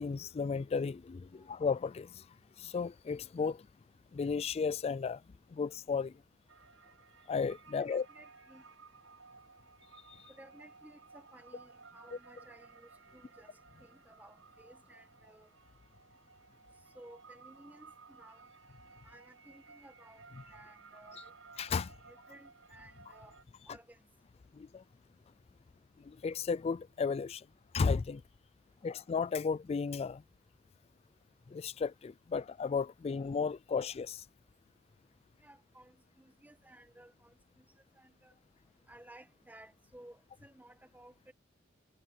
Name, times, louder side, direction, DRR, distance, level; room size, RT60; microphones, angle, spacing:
voice 1, 0.0-2.3 2.6-3.7 4.1-5.2 5.5-6.1 7.3-8.1 10.1-10.3 21.1-21.2 21.6-21.9 24.5-24.8 26.0-27.5 27.7-28.2 28.8-30.2 31.5-34.2, left 5 dB, 30° left, 0.3 m, -34 dB
sound 1, 6.5-23.4, right 4 dB, 80° right, 5.5 m, -57 dB
voice 2, 7.7-8.7 10.3-15.5 16.9-18.5 19.0-20.2 20.5-21.3 22.0-23.4 23.7-24.0 35.4-37.7 37.9-38.3 38.9-41.3, right 1 dB, 10° right, 1.6 m, -57 dB
head